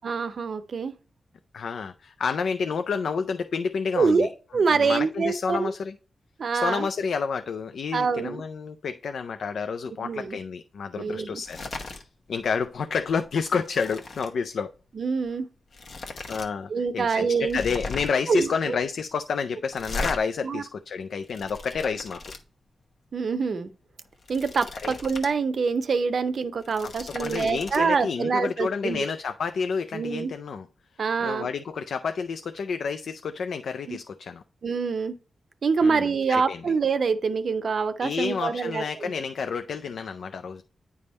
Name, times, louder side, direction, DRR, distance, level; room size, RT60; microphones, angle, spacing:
voice 1, 0.0-0.9 4.0-5.7 6.4-6.9 7.9-8.4 10.0-10.4 11.0-11.4 14.9-15.5 16.7-17.6 18.3-18.8 20.4-20.6 23.1-23.7 24.3-29.0 29.9-30.3 31.0-31.5 33.9-34.0 34.6-35.1 35.6-39.1, right 5 dB, 60° right, 0.6 m, -25 dB
voice 2, 1.5-4.3 4.7-6.0 6.5-11.6 12.0-14.7 16.0-22.2 24.8-25.0 26.8-30.7 31.2-34.4 35.8-36.7 38.0-40.6, left 5 dB, 80° left, 0.4 m, -30 dB
sound 1, 11.4-12.0 12.4-12.6 13.0-14.3 15.3-15.4 15.7-16.5 16.8-16.9 17.4-18.3 19.7-20.2 21.0-22.4 24.1-25.3 25.7-25.8 26.5-27.8, left 3 dB, 65° left, 1.0 m, -37 dB
9.5 x 3.5 x 4.2 m
wide cardioid pair, 95°, 0 cm